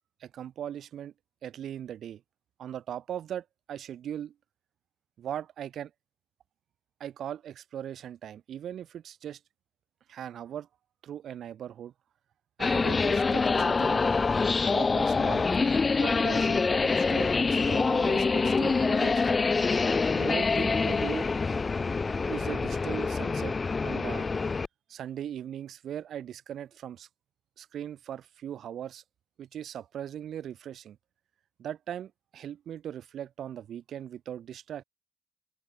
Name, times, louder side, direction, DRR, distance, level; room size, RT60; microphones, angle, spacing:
voice 1, 0.2-1.1 1.4-2.2 2.6-4.3 5.2-5.9 7.0-9.4 10.1-10.7 11.0-11.9 12.6-14.0 14.7-15.7 16.0-19.4 20.1-21.3 22.3-23.5 23.8-24.3 24.9-27.1 27.6-29.0 29.4-31.0 31.6-34.8, right 10 dB, 65° right, 2.6 m, -39 dB
sound 1, 12.6-24.7, left 4 dB, 30° left, 0.7 m, -26 dB
cardioid pair, 90°, 0 cm